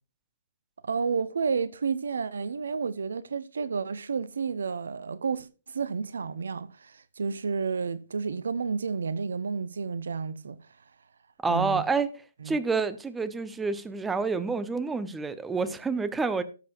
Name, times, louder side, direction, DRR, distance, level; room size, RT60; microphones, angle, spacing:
voice 1, 0.8-10.6 11.5-11.8 12.4-12.6, right 5 dB, 65° right, 0.6 m, -31 dB
voice 2, 11.4-12.1 12.4-16.4, right 4 dB, 10° right, 0.8 m, -28 dB
18.5 x 7.7 x 2.4 m
figure-of-eight pair, 120°, 0 cm